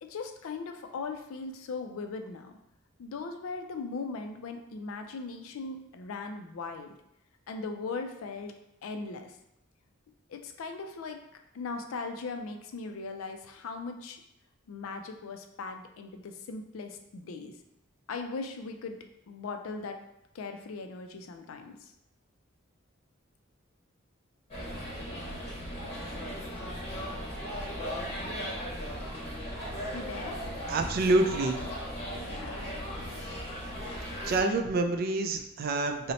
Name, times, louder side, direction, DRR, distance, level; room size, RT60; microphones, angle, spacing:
voice 1, 0.0-2.5 3.0-6.9 7.5-8.5 8.8-9.3 10.3-11.2 11.5-14.2 14.7-17.5 18.1-19.0 19.3-20.0 20.3-21.8 29.9-30.4 32.3-32.6, left 4 dB, 75° left, 5 dB, 0.4 m, -39 dB
sound 1, 24.5-34.4, equal, 30° left, 0.9 m, -37 dB
voice 2, 30.7-31.7 34.2-36.1, right 2 dB, 45° right, 5 dB, 0.3 m, -27 dB
2.8 x 2.1 x 3.9 m, 0.82 s
head